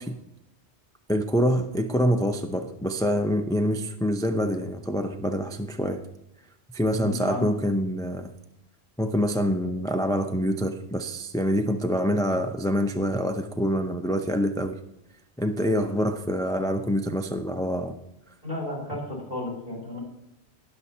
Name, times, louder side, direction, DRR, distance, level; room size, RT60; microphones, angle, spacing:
voice 1, 1.1-6.0 6.7-8.3 9.0-14.8 15.4-17.9, equal, 5° left, 6 dB, 0.3 m, -26 dB
voice 2, 7.0-7.4 18.4-20.0, left 1 dB, 40° right, -2 dB, 4.8 m, -33 dB
19.5 x 7.0 x 2.8 m, 0.83 s
omnidirectional pair, 1.1 m